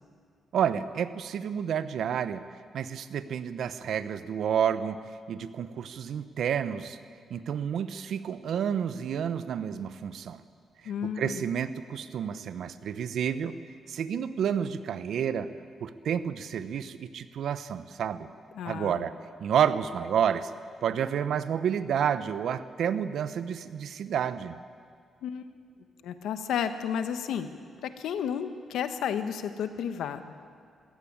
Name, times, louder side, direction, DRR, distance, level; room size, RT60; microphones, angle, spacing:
voice 1, 0.5-2.4 2.7-5.0 5.3-7.0 7.3-10.4 11.0-13.6 13.9-15.5 15.8-18.3 18.6-19.1 19.4-20.5 20.8-24.6, right 8 dB, 75° right, 13 dB, 1.0 m, -30 dB
voice 2, 10.8-11.5 18.5-19.0 25.2-25.5 26.0-27.5 27.8-30.3, left 8 dB, 85° left, 9 dB, 1.3 m, -32 dB
22.0 x 16.0 x 8.9 m, 2.1 s
cardioid pair, 90°, 0 cm